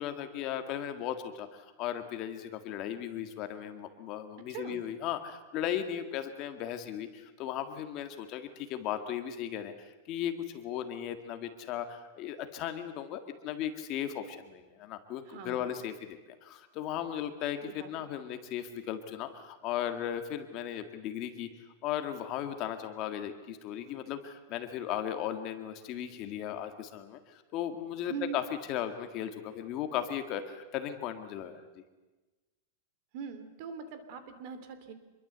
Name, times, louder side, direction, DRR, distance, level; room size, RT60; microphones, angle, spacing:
voice 1, 0.0-21.5 21.8-28.4 28.7-31.6, left 10 dB, 30° left, 7 dB, 1.8 m, -36 dB
voice 2, 15.3-15.8 17.6-18.1 28.1-28.4 33.1-34.9, right 7 dB, 40° right, 10 dB, 3.0 m, -42 dB
26.5 x 22.5 x 8.0 m, 1.1 s
supercardioid pair, 175°, 0 cm